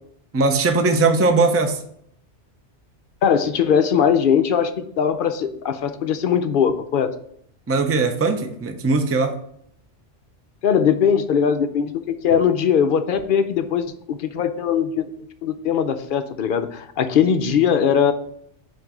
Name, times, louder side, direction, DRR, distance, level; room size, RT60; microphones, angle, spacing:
voice 1, 0.3-1.8 7.7-9.4, right 3 dB, 20° right, 6 dB, 0.3 m, -19 dB
voice 2, 3.2-7.1 10.6-15.1 15.4-18.1, left 7 dB, 60° left, 9 dB, 0.6 m, -20 dB
7.6 x 2.6 x 5.9 m, 0.69 s
omnidirectional pair, 1.2 m